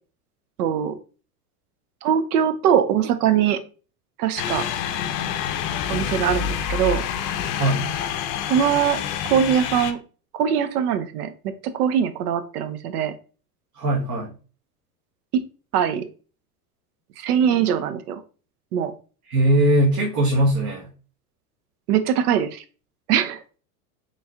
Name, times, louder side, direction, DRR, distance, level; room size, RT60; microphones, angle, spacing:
voice 1, 0.6-0.9 2.0-3.6 4.2-4.6 5.9-7.0 8.5-9.0 9.3-10.0 10.3-11.3 11.6-13.1 15.3-15.4 15.7-16.1 17.2-18.2 18.7-18.9 21.9-22.6 23.1-23.4, right 9 dB, 75° right, 11 dB, 0.7 m, -21 dB
sound 1, 4.4-9.9, left 9 dB, 50° left, 0.6 m, -27 dB
voice 2, 7.5-7.9 13.7-14.4 19.2-20.9, right 1 dB, 40° right, -3 dB, 1.2 m, -20 dB
4.2 x 3.1 x 2.4 m, 0.36 s
hypercardioid pair, 95°, 46 cm